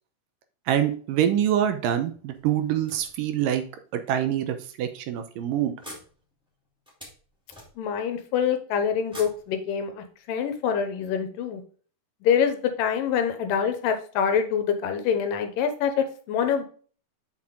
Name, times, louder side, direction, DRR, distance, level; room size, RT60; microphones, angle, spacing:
voice 1, 0.7-3.6 3.9-5.7, right 10 dB, 75° right, 8 dB, 2.3 m, -25 dB
sound 1, 2.3-3.7 4.4-4.5 4.9-5.0 5.8-8.1 9.0-10.2, equal, ahead, 2.0 m, -47 dB
voice 2, 7.8-11.6 12.2-16.6, left 7 dB, 80° left, 8 dB, 2.4 m, -25 dB
6.0 x 5.8 x 3.7 m, 0.42 s
omnidirectional pair, 4.1 m